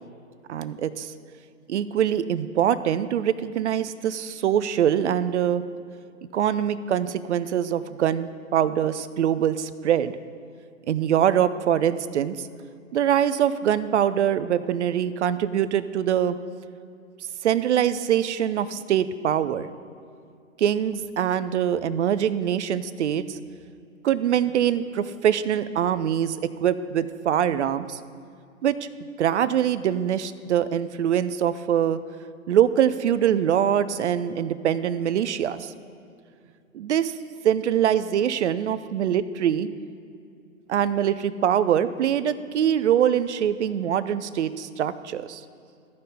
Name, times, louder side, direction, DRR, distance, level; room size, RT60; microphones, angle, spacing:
voice 1, 0.5-1.1 1.7-5.6 6.3-10.1 10.9-12.5 12.9-16.4 17.4-19.7 20.6-23.4 24.0-28.0 28.6-28.7 29.2-32.0 32.5-35.7 36.7-37.1 37.4-39.7 40.7-45.4, right 9 dB, 55° right, 13 dB, 0.6 m, -23 dB
14.0 x 5.3 x 4.2 m, 2.5 s
hypercardioid pair, 140°, 41 cm